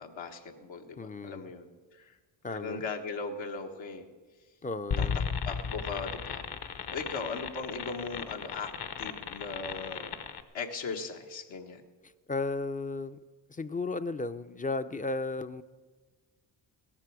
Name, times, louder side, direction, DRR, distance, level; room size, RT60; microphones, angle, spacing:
voice 1, 0.0-2.1 2.5-4.1 5.0-5.1 5.4-6.5 6.9-10.2 10.5-11.8, left 4 dB, 80° left, 4 dB, 1.5 m, -38 dB
voice 2, 1.0-1.4 2.4-2.8 4.6-5.2 12.3-13.2 13.5-15.6, left 3 dB, 20° left, 12 dB, 0.4 m, -34 dB
sound 1, 4.9-10.4, left 6 dB, 55° left, 1.0 m, -35 dB
17.0 x 14.5 x 4.8 m, 1.4 s
cardioid pair, 90°, 45 cm